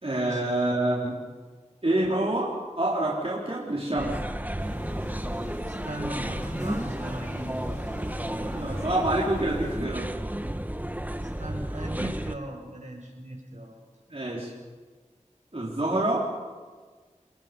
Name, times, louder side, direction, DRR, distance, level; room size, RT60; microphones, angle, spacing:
voice 1, 0.0-1.1 1.8-2.5 2.8-4.1 8.5-10.1 14.1-14.5 15.5-16.3, right 1 dB, 50° right, -5 dB, 4.2 m, -26 dB
sound 1, 4.0-12.3, right 1 dB, 15° right, 1.2 m, -32 dB
sound 2, 4.6-9.8, left 2 dB, 65° left, 2.9 m, -43 dB
voice 2, 5.0-5.4 5.7-7.6 8.3-9.0 11.2-13.7, right 1 dB, 70° right, 0 dB, 5.9 m, -38 dB
28.5 x 21.5 x 5.4 m, 1.5 s
wide cardioid pair, 50°, 13 cm